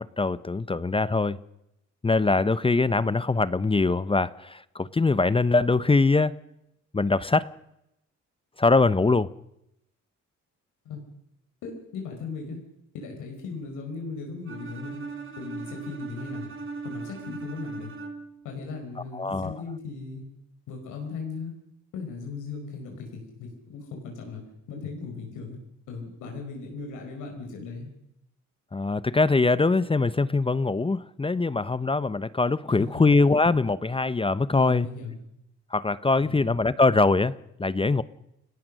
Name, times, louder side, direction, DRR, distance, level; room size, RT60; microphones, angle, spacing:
voice 1, 0.0-1.4 2.0-6.3 6.9-7.5 8.6-9.3 19.1-19.6 28.7-34.9 35.7-38.0, left 3 dB, 20° left, 16 dB, 0.8 m, -23 dB
voice 2, 11.6-12.6 12.9-15.0 15.4-16.5 16.8-17.9 18.4-20.3 20.7-21.6 21.9-24.4 24.7-25.6 25.9-27.9 32.7-33.2 34.5-35.2 36.2-36.6, left 4 dB, 90° left, 2 dB, 5.3 m, -37 dB
Bowed string instrument, 14.5-18.4, right 4 dB, 45° right, 4.7 m, -38 dB
30.0 x 17.5 x 6.5 m, 0.81 s
cardioid pair, 90°, 30 cm